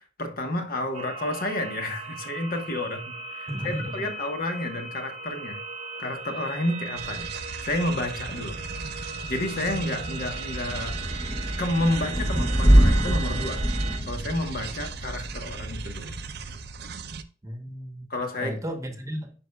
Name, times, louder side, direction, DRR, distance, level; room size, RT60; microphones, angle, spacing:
voice 1, 0.0-5.6 6.0-7.3 7.6-8.6 9.0-13.6 14.1-16.1 18.1-18.6, left 1 dB, 55° left, 1.2 m, -30 dB
sound 1, 0.9-14.0, right 4 dB, 40° right, 0.9 m, -38 dB
voice 2, 3.5-4.1 17.4-18.1 18.4-19.3, equal, 20° right, 1.0 m, -34 dB
sound 2, 7.0-17.2, right 5 dB, 60° right, 0.6 m, -38 dB
Thunder / Rain, 8.2-16.5, equal, 10° left, 0.8 m, -25 dB
10.0 x 5.5 x 2.3 m
head